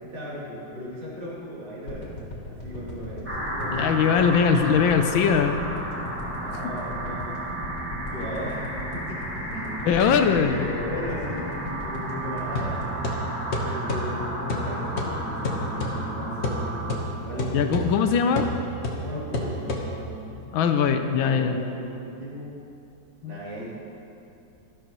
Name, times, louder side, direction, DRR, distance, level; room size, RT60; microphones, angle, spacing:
voice 1, 0.0-2.1 2.5-4.4 6.2-7.5 7.9-8.6 8.9-10.2 10.5-13.0 13.7-16.6 17.0-17.7 19.0-20.8 21.2-22.6 23.3-23.7, equal, 70° right, -9 dB, 4.0 m, -37 dB
sound 1, 1.9-14.2 14.6-14.7, left 2 dB, 55° left, 2.6 m, -38 dB
sound 2, 3.2-17.0, right 1 dB, 5° right, 1.2 m, -33 dB
voice 2, 3.7-5.6 9.8-10.6 17.5-18.5 20.5-21.6 23.2-23.4, left 6 dB, 75° left, 7 dB, 1.4 m, -21 dB
sound 3, 12.6-20.3, left 1 dB, 40° left, 1.1 m, -31 dB
13.0 x 12.5 x 3.0 m, 2.7 s
omnidirectional pair, 2.2 m